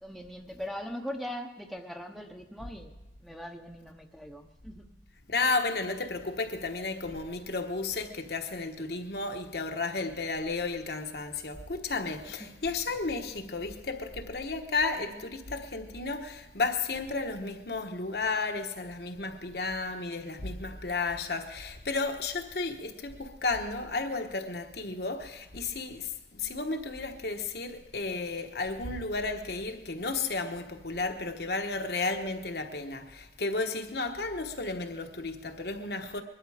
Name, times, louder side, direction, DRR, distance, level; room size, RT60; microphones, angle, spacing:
voice 1, 0.0-2.9 3.2-4.9 12.4-12.5, equal, ahead, 0.8 m, -40 dB
voice 2, 5.3-36.2, left 3 dB, 60° left, 1.2 m, -33 dB
22.0 x 12.0 x 4.9 m
head